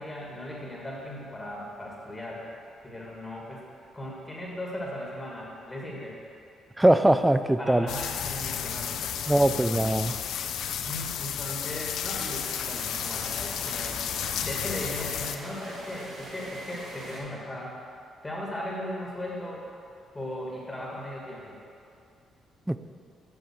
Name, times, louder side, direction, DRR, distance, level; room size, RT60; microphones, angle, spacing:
voice 1, 0.0-2.5 2.8-3.6 3.9-6.1 7.6-9.9 10.9-17.7 18.2-19.6 20.1-21.6, left 1 dB, 15° left, -3 dB, 1.9 m, -37 dB
voice 2, 6.8-7.9 9.3-10.1 22.7-22.8, right 1 dB, 10° right, 11 dB, 0.4 m, -21 dB
sound 1, 7.9-15.4, left 9 dB, 80° left, 0.5 m, -32 dB
sound 2, 12.2-17.2, right 1 dB, 85° right, 1.8 m, -43 dB
8.7 x 5.5 x 6.2 m, 2.4 s
cardioid pair, 90°, 0 cm